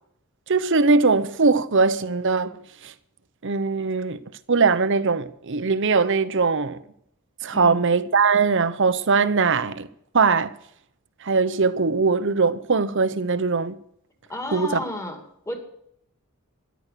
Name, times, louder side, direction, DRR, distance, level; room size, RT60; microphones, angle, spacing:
voice 1, 0.5-2.5 2.8-2.9 3.4-4.2 4.5-6.8 7.4-9.9 10.1-10.5 11.2-13.8 14.5-14.8, right 4 dB, 55° right, 0.8 m, -21 dB
voice 2, 7.5-7.8 14.3-15.2 15.5-15.6, left 1 dB, 15° left, 2.6 m, -31 dB
13.5 x 11.5 x 6.7 m
head